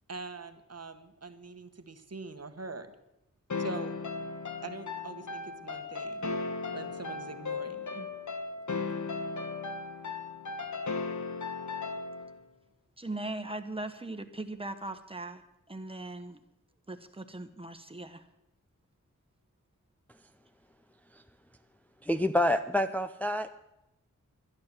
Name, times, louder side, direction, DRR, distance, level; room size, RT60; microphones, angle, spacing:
voice 1, 0.1-2.9 3.6-4.0 4.6-6.3 6.7-8.1, right 3 dB, 50° right, 9 dB, 1.2 m, -43 dB
sound 1, 3.5-12.4, left 4 dB, 65° left, 1.3 m, -36 dB
voice 2, 13.0-15.4 15.7-16.4 16.9-18.3, right 2 dB, 15° right, 8 dB, 1.2 m, -39 dB
voice 3, 22.0-23.5, left 1 dB, 5° left, 8 dB, 0.5 m, -28 dB
11.5 x 11.5 x 7.6 m, 0.88 s
wide cardioid pair, 65°, 32 cm